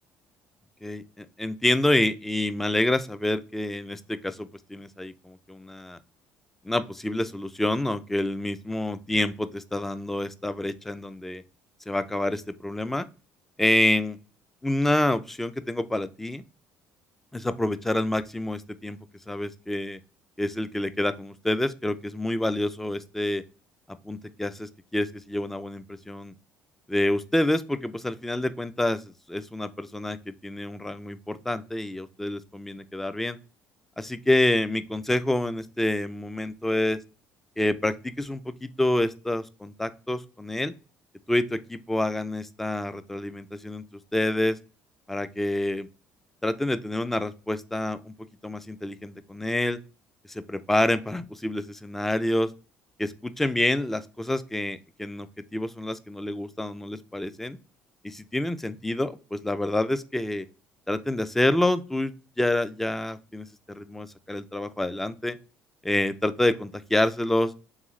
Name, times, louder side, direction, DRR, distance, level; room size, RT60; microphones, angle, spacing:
voice 1, 0.8-6.0 6.7-11.4 11.9-13.1 13.6-14.2 14.6-16.4 17.3-19.0 19.3-20.0 20.4-23.4 24.0-26.3 26.9-33.4 34.0-37.0 37.6-40.7 41.3-43.8 44.1-44.6 45.1-45.9 46.4-48.1 48.4-49.8 50.3-52.5 53.0-55.3 55.5-57.6 58.0-60.5 60.9-65.4 65.8-67.5, left 1 dB, 5° left, 13 dB, 0.4 m, -27 dB
3.5 x 3.5 x 3.1 m, 0.34 s
cardioid pair, 110°, 4 cm